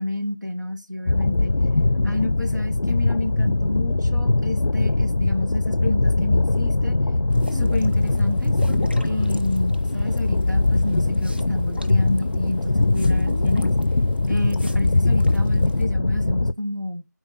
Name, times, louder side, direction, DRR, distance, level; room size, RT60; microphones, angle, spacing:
voice 1, 0.0-1.5 2.0-7.0 7.5-8.5 9.0-13.7 14.3-17.1, left 1 dB, 80° right, 1.7 m, -30 dB
sound 1, 1.1-16.5, left 2 dB, 80° left, 0.4 m, -21 dB
sound 2, 7.3-15.8, equal, 35° right, 0.5 m, -39 dB
9.5 x 4.3 x 3.0 m
figure-of-eight pair, 175°, 10 cm